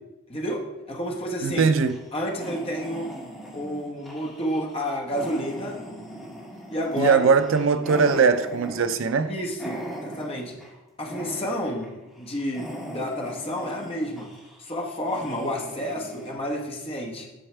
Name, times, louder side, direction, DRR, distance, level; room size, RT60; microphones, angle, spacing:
voice 1, 0.3-1.7 2.1-3.1 3.5-5.8 6.7-7.3 9.3-10.6 11.0-11.9 12.2-14.3 14.6-17.3, equal, 25° left, 1.1 m, -30 dB
voice 2, 1.4-2.0 7.0-9.3, right 5 dB, 65° right, 0.4 m, -20 dB
sound 1, 1.6-10.8 11.1-11.9 12.2-16.3, equal, ahead, 1.9 m, -39 dB
9.0 x 6.3 x 3.3 m
head